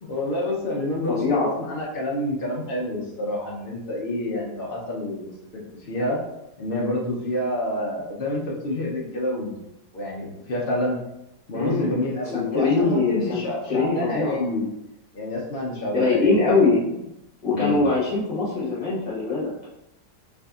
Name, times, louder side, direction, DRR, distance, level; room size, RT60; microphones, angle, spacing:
voice 1, 0.0-6.2 6.6-9.5 9.9-11.0 11.5-14.7 15.1-16.4 17.5-17.9, left 1 dB, 85° left, -4 dB, 0.4 m, -28 dB
voice 2, 1.1-1.5 11.5-12.0 12.3-13.4 13.7-14.4 15.9-16.8 17.4-19.5, left 3 dB, 25° left, -6 dB, 0.9 m, -22 dB
4.6 x 2.6 x 2.3 m, 0.87 s
omnidirectional pair, 1.8 m